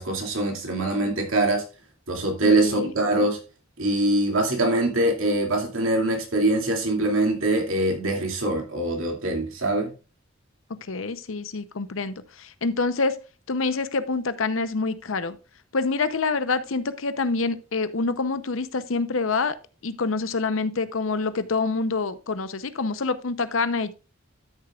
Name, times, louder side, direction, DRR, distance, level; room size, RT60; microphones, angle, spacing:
voice 1, 0.0-1.6 2.1-3.4 3.8-9.9, right 2 dB, 75° right, 2.5 m, -23 dB
voice 2, 2.4-2.9 10.8-13.2 13.5-15.4 15.7-19.6 19.8-23.9, left 4 dB, 70° left, 0.8 m, -26 dB
12.5 x 6.7 x 2.4 m
head